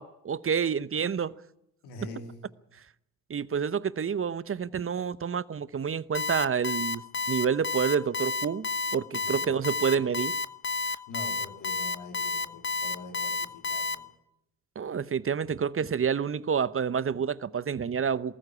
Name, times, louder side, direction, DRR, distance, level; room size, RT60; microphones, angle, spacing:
voice 1, 0.0-1.3 3.3-10.3 14.8-18.4, right 7 dB, 30° right, 0.8 m, -28 dB
voice 2, 1.8-2.5 9.2-9.6 11.1-14.0, left 3 dB, 80° left, 3.1 m, -44 dB
Alarm, 6.1-13.9, left 4 dB, 25° left, 1.0 m, -30 dB
20.0 x 14.0 x 9.8 m
hypercardioid pair, 50°, 40 cm